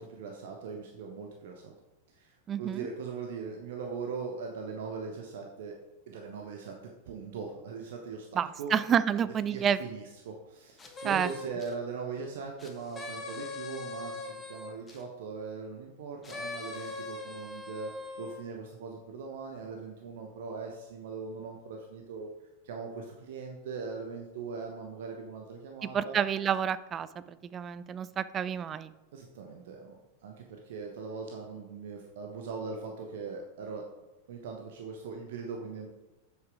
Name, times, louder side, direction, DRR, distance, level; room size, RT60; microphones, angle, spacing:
voice 1, 0.0-1.7 2.1-5.8 6.1-6.8 7.1-8.3 8.6-8.7 9.5-22.3 22.6-26.2 29.1-30.0 30.2-33.8 34.3-35.9, right 5 dB, 55° right, 2 dB, 1.0 m, -40 dB
voice 2, 2.5-2.9 8.3-9.8 11.0-11.3 25.9-28.9, right 8 dB, 25° right, 15 dB, 0.4 m, -29 dB
sound 1, 10.8-11.7 12.6-15.0 16.2-18.4, left 3 dB, 20° left, 1.3 m, -41 dB
7.7 x 6.8 x 4.8 m, 1.0 s
figure-of-eight pair, 90°, 0 cm